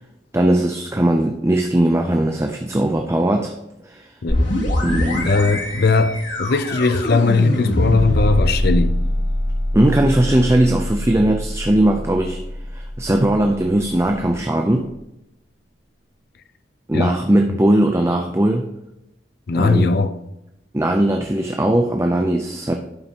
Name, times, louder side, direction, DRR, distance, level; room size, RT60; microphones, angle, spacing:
voice 1, 0.3-3.6 3.8-4.1 4.8-5.3 9.7-12.4 12.7-14.9 16.9-18.7 19.5-20.0 20.7-22.8, right 1 dB, 15° right, 0.5 m, -19 dB
sound 1, 4.3-13.8, left 1 dB, 85° left, 2.8 m, -23 dB
voice 2, 5.3-9.0 16.9-17.1 19.5-20.1, left 3 dB, 55° left, 0.5 m, -18 dB
11.5 x 5.6 x 2.9 m
head